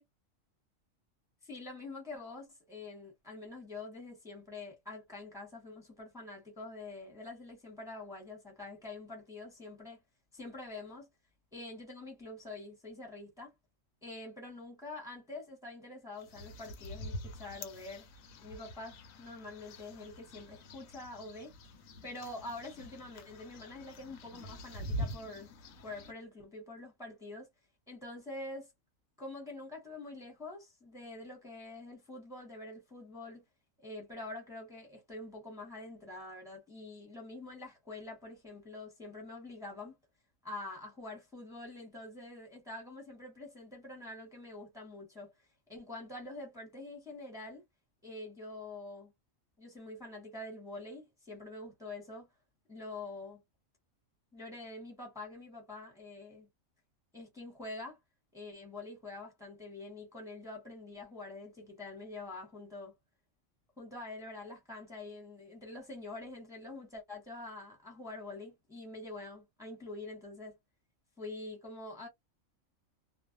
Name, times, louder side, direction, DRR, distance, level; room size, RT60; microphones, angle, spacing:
voice 1, 1.4-10.0 10.3-11.1 11.5-13.5 14.0-18.0 18.4-21.5 22.0-25.5 25.8-27.5 27.9-28.7 29.2-33.4 33.8-40.0 40.4-45.3 45.7-47.6 48.0-49.1 49.6-52.3 52.7-53.4 54.3-56.5 57.1-58.0 58.3-62.9 63.8-70.5 71.2-72.1, left 2 dB, 5° right, 1.0 m, -46 dB
sound 1, 16.2-26.1, equal, 85° left, 1.0 m, -45 dB
2.5 x 2.0 x 2.7 m
omnidirectional pair, 1.4 m